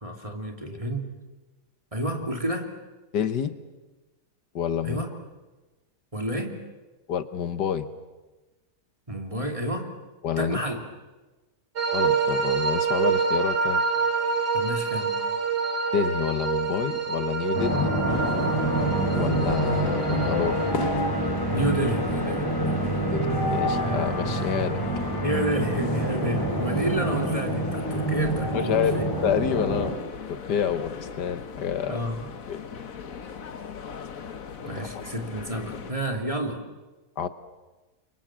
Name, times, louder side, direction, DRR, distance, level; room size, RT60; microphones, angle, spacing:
voice 1, 0.0-1.1 1.9-2.7 4.8-5.1 6.1-6.6 9.1-9.9 10.4-10.8 14.5-15.2 21.5-23.0 25.2-29.0 31.9-32.3 34.6-36.6, right 1 dB, 20° right, 3 dB, 3.0 m, -30 dB
voice 2, 3.1-3.5 4.6-5.0 7.1-7.9 10.2-10.6 11.9-13.8 15.9-18.0 19.1-20.6 23.1-24.8 28.5-29.9 30.3-32.0 32.5-32.6 34.8-34.9 37.2-37.3, left 8 dB, 80° left, 11 dB, 1.8 m, -28 dB
sound 1, 11.8-20.7, right 5 dB, 80° right, 3.1 m, -27 dB
sound 2, 17.5-29.9, right 1 dB, 15° left, 4.3 m, -27 dB
sound 3, 18.1-35.9, left 6 dB, 55° left, 1.6 m, -38 dB
29.5 x 24.5 x 7.5 m, 1.2 s
omnidirectional pair, 1.8 m